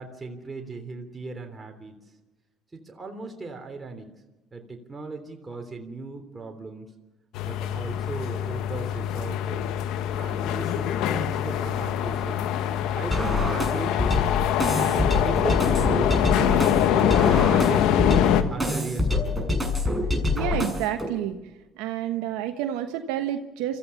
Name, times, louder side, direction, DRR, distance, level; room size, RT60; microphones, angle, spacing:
voice 1, 0.0-1.9 2.7-4.1 4.5-6.9 7.4-9.7 10.2-12.5 12.9-14.4 14.8-17.9 18.5-19.4, right 3 dB, 25° right, 3 dB, 3.5 m, -37 dB
sound 1, 7.3-18.4, left 10 dB, 75° left, 1.4 m, -24 dB
sound 2, 13.1-21.1, left 2 dB, 5° right, 6.8 m, -26 dB
voice 2, 20.3-21.4 21.8-23.8, right 11 dB, 80° right, 6 dB, 1.2 m, -29 dB
25.0 x 15.0 x 7.1 m, 1.1 s
supercardioid pair, 70°, 0 cm